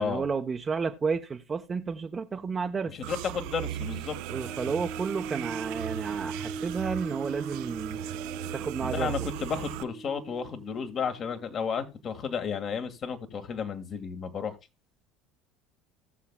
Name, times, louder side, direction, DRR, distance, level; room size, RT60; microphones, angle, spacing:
voice 1, 0.0-2.9 4.3-8.0 8.5-9.1, right 5 dB, 30° right, 0.9 m, -31 dB
sound 1, 3.0-9.8, right 12 dB, 70° right, 0.7 m, -38 dB
voice 2, 3.1-4.2 8.8-14.6, left 6 dB, 40° left, 1.7 m, -32 dB
sound 2, 4.2-11.6, right 4 dB, 10° left, 1.5 m, -40 dB
17.5 x 7.0 x 2.3 m
hypercardioid pair, 75°, 0 cm